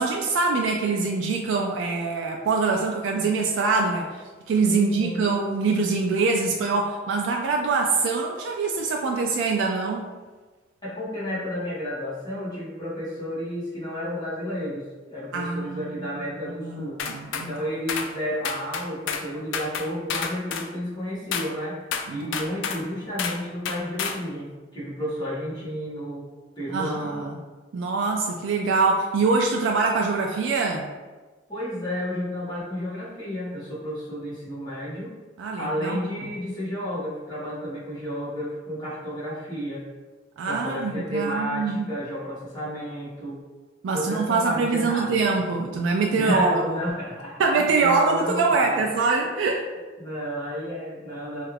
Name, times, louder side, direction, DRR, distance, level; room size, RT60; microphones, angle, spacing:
voice 1, 0.0-10.0 15.3-16.1 16.6-17.5 22.1-22.3 26.7-27.4 27.7-30.9 35.4-36.0 40.4-41.9 43.8-46.6 47.4-49.7, right 4 dB, 75° right, 1 dB, 0.3 m, -24 dB
voice 2, 4.7-5.3 10.8-17.0 17.3-21.8 22.1-26.3 26.5-27.3 31.5-35.1 35.6-39.9 40.4-43.4 43.9-45.2 46.1-48.8 50.0-51.5, equal, 25° left, -10 dB, 1.4 m, -31 dB
sound 1, 17.0-17.5 17.9-18.1 18.4-19.3 19.5-20.7 21.3-21.5 21.9-22.8 23.2-23.4 23.7-24.2, left 6 dB, 70° left, 0.3 m, -30 dB
3.2 x 2.4 x 3.2 m, 1.3 s
head